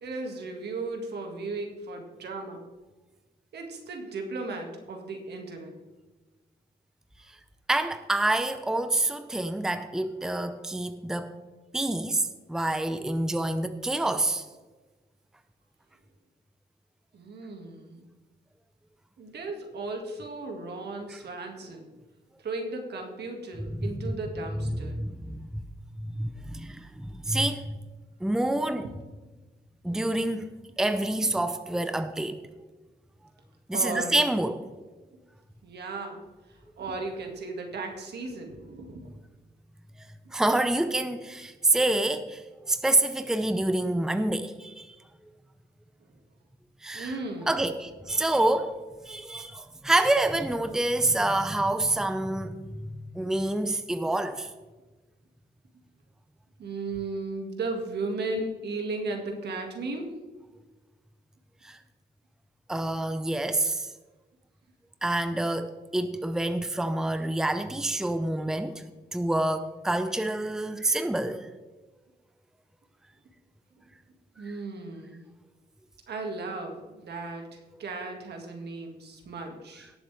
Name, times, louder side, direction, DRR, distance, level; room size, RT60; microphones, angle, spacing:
voice 1, 0.0-2.6 3.5-5.7 17.1-18.1 19.2-21.9 22.4-25.0 29.9-30.1 33.7-34.2 35.6-36.2 36.5-39.1 40.2-40.3 46.9-47.7 56.6-60.1 73.8-73.9 74.4-75.2 76.1-79.9, right 3 dB, 75° right, 2.1 m, -36 dB
voice 2, 7.7-11.3 11.7-14.5 23.7-24.1 24.7-25.5 26.0-27.8 28.2-28.9 29.8-30.5 30.8-32.4 33.7-34.6 40.3-45.0 46.8-47.2 47.5-48.8 49.1-54.5 61.6-61.8 62.7-63.9 65.0-68.8 69.1-71.5, right 2 dB, 5° right, 0.6 m, -27 dB
18.0 x 7.4 x 3.4 m
cardioid pair, 95°, 17 cm